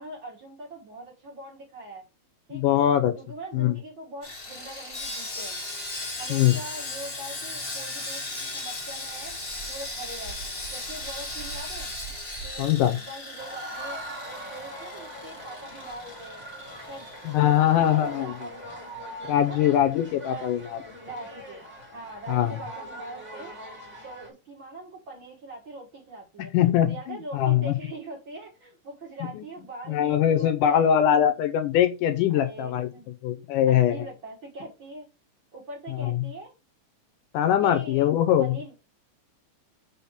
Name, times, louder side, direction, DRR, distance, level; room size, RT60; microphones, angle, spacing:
voice 1, 0.0-2.0 2.5-2.8 3.2-5.6 6.2-9.4 9.7-10.4 10.7-11.9 12.4-16.4 16.8-17.2 17.4-18.6 19.4-19.6 20.3-20.6 21.0-21.6 21.9-23.5 24.0-26.5 26.9-30.9 32.3-33.1 33.7-35.1 35.5-36.5 37.6-38.1 38.4-38.7, right 2 dB, 45° right, 1.8 m, -42 dB
voice 2, 2.5-3.1 3.5-3.8 6.3-6.6 12.6-13.0 17.3-18.3 19.3-20.8 22.3-22.6 26.4-27.8 29.4-29.5 29.9-32.9 33.2-34.1 35.9-36.2 37.3-38.6, left 10 dB, 80° left, 2.2 m, -22 dB
Sawing, 4.2-18.5 18.7-18.9 19.4-19.5, left 2 dB, 30° left, 1.2 m, -37 dB
sound 1, 13.4-24.3, equal, 5° right, 1.4 m, -42 dB
5.7 x 4.0 x 5.8 m
omnidirectional pair, 3.9 m